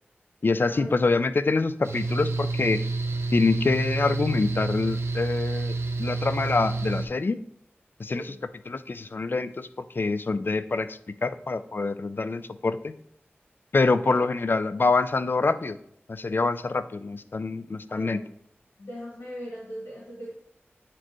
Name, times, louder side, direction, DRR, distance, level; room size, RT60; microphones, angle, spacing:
voice 1, 0.4-2.8 3.3-7.4 8.0-8.3 8.7-9.7 10.0-12.9 13.7-15.8 16.1-18.2, left 3 dB, 50° left, 13 dB, 0.4 m, -25 dB
Mechanical fan, 1.8-7.1, right 3 dB, 80° right, 0.8 m, -29 dB
voice 2, 13.8-14.2 17.9-18.2 18.8-20.3, equal, 80° left, -6 dB, 2.4 m, -39 dB
9.0 x 4.2 x 3.0 m, 0.71 s
wide cardioid pair, 50°, 4 cm